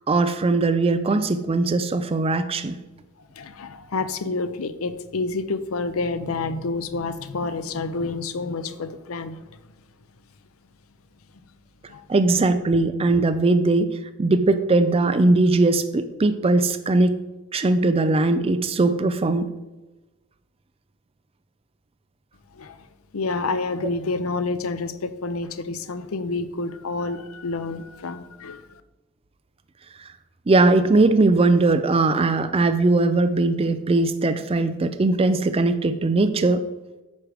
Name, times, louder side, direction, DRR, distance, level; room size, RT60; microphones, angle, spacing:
voice 1, 0.1-2.8 12.1-13.9 14.2-17.2 17.5-19.5 30.5-36.6, right 2 dB, 30° right, 9 dB, 0.4 m, -20 dB
voice 2, 3.4-9.4 11.9-12.0 22.5-22.8 23.1-28.7, left 3 dB, 90° left, 11 dB, 0.7 m, -28 dB
9.6 x 6.2 x 4.9 m, 1.1 s
head